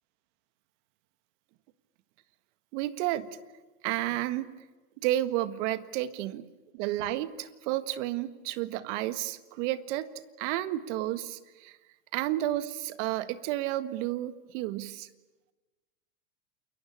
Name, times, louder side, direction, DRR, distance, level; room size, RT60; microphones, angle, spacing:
voice 1, 2.7-3.3 3.8-4.5 5.0-6.5 6.7-10.1 10.4-11.8 12.1-15.1, right 14 dB, 55° right, 12 dB, 1.8 m, -31 dB
29.0 x 22.5 x 8.7 m, 1.2 s
hypercardioid pair, 105°, 42 cm